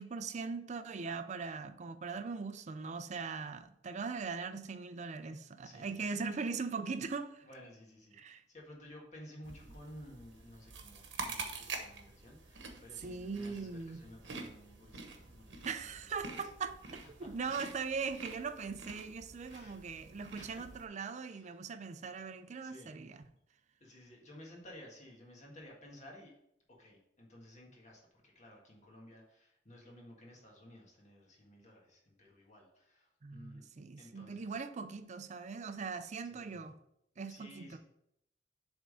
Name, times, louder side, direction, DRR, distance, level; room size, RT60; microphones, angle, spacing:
voice 1, 0.0-7.4 8.2-8.4 13.0-14.0 15.6-16.8 17.2-23.2 33.2-36.7 37.2-37.8, right 5 dB, 40° right, 0.4 m, -40 dB
voice 2, 5.6-6.3 7.4-16.4 16.9-17.5 19.5-19.8 20.4-20.6 21.3-21.6 22.6-23.0 23.8-26.4 26.7-33.6 34.0-34.6 36.3-36.7 37.3-37.8, left 1 dB, 40° left, 1.8 m, -55 dB
sound 1, 9.4-20.8, right 4 dB, 90° right, 1.0 m, -47 dB
7.5 x 3.6 x 5.1 m
head